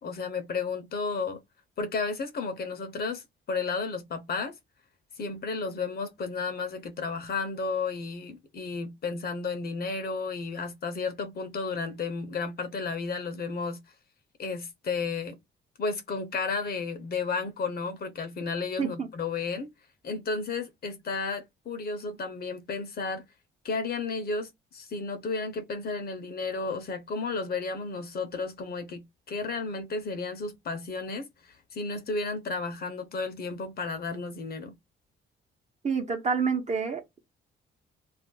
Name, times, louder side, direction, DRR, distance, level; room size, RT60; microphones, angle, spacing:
voice 1, 0.0-1.4 1.8-4.5 5.2-13.8 14.4-15.4 15.8-19.7 20.0-23.2 23.6-34.7, left 4 dB, 50° left, 0.7 m, -33 dB
voice 2, 18.8-19.1 35.8-37.2, right 5 dB, 35° right, 0.9 m, -28 dB
2.5 x 2.0 x 3.7 m
cardioid pair, 90°, 20 cm